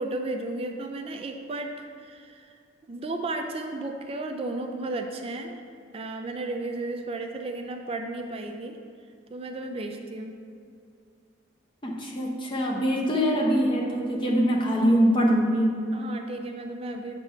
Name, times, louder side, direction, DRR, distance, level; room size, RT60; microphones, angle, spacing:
voice 1, 0.0-2.5 2.9-5.5 5.9-8.8 9.3-10.4 15.9-17.2, right 2 dB, 30° right, 5 dB, 0.3 m, -34 dB
voice 2, 11.8-15.7, equal, 25° left, -1 dB, 0.9 m, -23 dB
8.0 x 3.4 x 5.6 m, 2.3 s
head